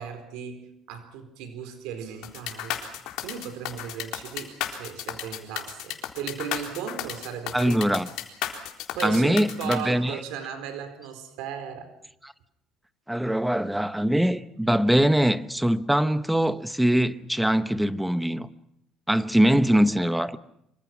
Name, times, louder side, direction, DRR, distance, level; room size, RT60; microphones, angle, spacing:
voice 1, 0.0-2.9 3.2-7.9 8.9-11.9, right 8 dB, 80° right, 4.4 m, -36 dB
sound 1, 2.2-9.8, left 12 dB, 70° left, 3.8 m, -33 dB
voice 2, 7.5-8.1 9.0-10.2 12.2-12.3 13.1-18.5 19.1-20.4, equal, 5° right, 0.9 m, -22 dB
26.0 x 25.5 x 6.1 m
cardioid pair, 160°, 0 cm